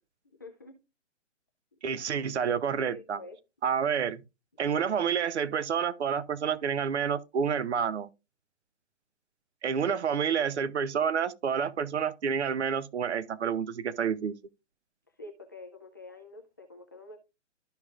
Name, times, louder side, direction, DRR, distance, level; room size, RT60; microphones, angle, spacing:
voice 1, 0.4-0.8 2.9-3.4 15.2-17.2, left 2 dB, 15° left, 0.4 m, -47 dB
voice 2, 1.8-3.2 3.6-4.2 4.6-8.1 9.6-14.4, right 7 dB, 60° right, 0.8 m, -29 dB
13.0 x 4.9 x 2.4 m
figure-of-eight pair, 140°, 37 cm